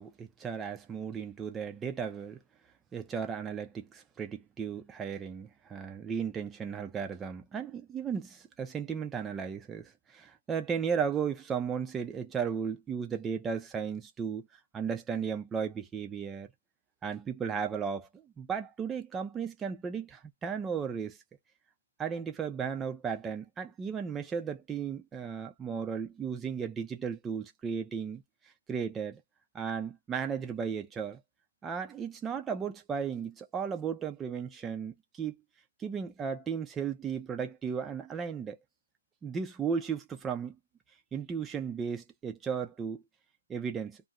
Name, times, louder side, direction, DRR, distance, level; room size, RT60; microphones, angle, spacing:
voice 1, 0.0-2.4 2.9-14.5 14.7-16.5 17.0-21.2 22.0-28.2 28.7-29.2 29.5-31.2 31.6-35.4 35.8-38.6 39.2-40.6 41.1-43.0 43.5-44.0, right 6 dB, 10° right, 0.5 m, -35 dB
2.5 x 2.3 x 3.4 m
hypercardioid pair, 160°, 0 cm